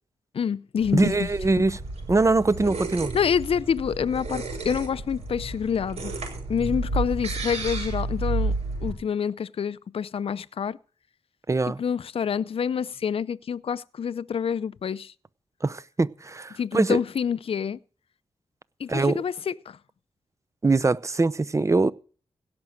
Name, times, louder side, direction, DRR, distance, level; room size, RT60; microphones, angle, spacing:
voice 1, 0.3-1.3 3.1-6.1 6.5-8.5 8.8-10.8 11.8-15.1 16.6-17.8 18.8-19.8, left 7 dB, 60° left, 0.5 m, -27 dB
sound 1, 0.8-8.9, right 2 dB, 85° right, 5.6 m, -32 dB
voice 2, 0.9-1.8 2.1-3.1 11.5-11.8 15.6-17.0 18.9-19.2 20.6-21.9, right 3 dB, 30° right, 0.8 m, -22 dB
17.0 x 6.1 x 7.8 m
cardioid pair, 60°, 11 cm